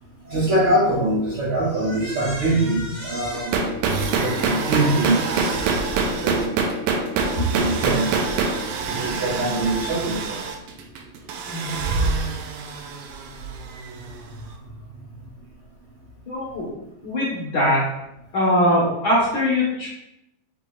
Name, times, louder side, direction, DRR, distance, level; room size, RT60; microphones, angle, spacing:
voice 1, 0.2-3.7 4.2-5.7 6.0-6.6 7.3-8.0 8.9-10.4, right 1 dB, 40° right, -7 dB, 1.9 m, -23 dB
sound 1, 3.3-14.2, right 4 dB, 90° right, 1.7 m, -25 dB
voice 2, 16.3-16.7 17.0-17.8 18.3-19.9, left 1 dB, 75° left, -7 dB, 1.1 m, -21 dB
6.8 x 3.3 x 2.3 m, 0.85 s
omnidirectional pair, 4.0 m